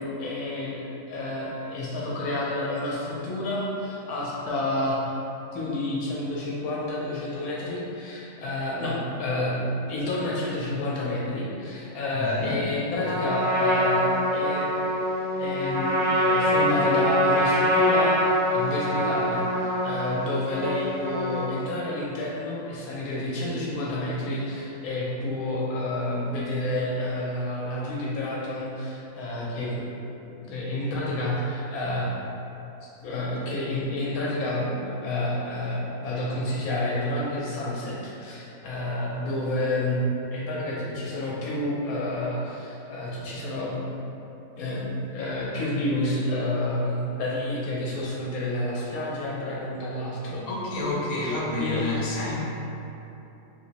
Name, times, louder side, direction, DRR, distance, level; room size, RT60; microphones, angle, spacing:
voice 1, 0.0-5.2 5.5-14.7 15.4-15.9 16.2-29.9 30.3-32.1 32.8-40.0 40.3-43.9 44.6-50.5 51.2-52.4, left 1 dB, 85° left, -5 dB, 1.1 m, -29 dB
voice 2, 12.1-12.5 50.5-52.4, left 2 dB, 60° left, -5 dB, 1.0 m, -29 dB
Trumpet, 13.0-21.7, equal, 70° right, 1.4 m, -24 dB
3.1 x 2.9 x 2.8 m, 2.9 s
omnidirectional pair, 1.5 m